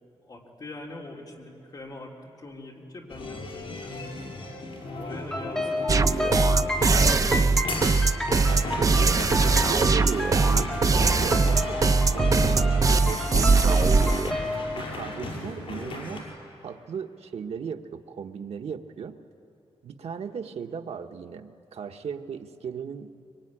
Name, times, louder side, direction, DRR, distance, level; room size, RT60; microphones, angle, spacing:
voice 1, 0.2-4.2 5.0-6.7, left 2 dB, 40° left, -1 dB, 3.7 m, -43 dB
sound 1, 3.1-16.2, left 2 dB, 60° left, 5.7 m, -35 dB
sound 2, 5.3-14.6, left 1 dB, 5° left, 3.3 m, -32 dB
sound 3, 5.9-14.3, right 4 dB, 35° right, 0.6 m, -21 dB
voice 2, 8.3-11.8 12.1-14.2 14.7-16.3 16.6-19.2 19.8-23.1, right 6 dB, 80° right, 5 dB, 1.2 m, -37 dB
24.0 x 24.0 x 10.0 m, 2.7 s
wide cardioid pair, 150°, 11 cm